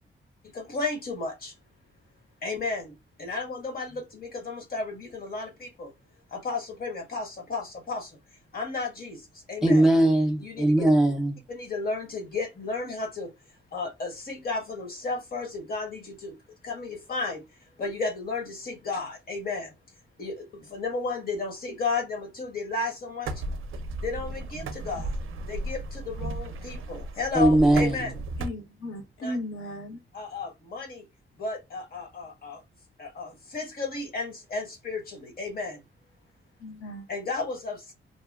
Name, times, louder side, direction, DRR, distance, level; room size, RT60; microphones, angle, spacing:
voice 1, 0.5-1.5 2.4-5.9 6.3-8.2 8.5-9.8 10.4-10.8 11.5-13.3 13.7-16.3 16.6-17.4 17.8-19.7 20.2-23.4 24.0-25.1 25.5-28.2 29.2-29.4 30.1-31.0 31.4-32.6 33.0-35.8 37.1-37.9, left 3 dB, 45° left, 1.0 m, -33 dB
voice 2, 9.6-11.4 27.3-28.1, right 1 dB, ahead, 0.4 m, -20 dB
sound 1, 23.3-28.5, right 2 dB, 75° right, 0.4 m, -34 dB
voice 3, 28.4-30.0 36.6-37.1, left 1 dB, 70° left, 0.9 m, -36 dB
2.8 x 2.1 x 2.3 m
wide cardioid pair, 165°, 21 cm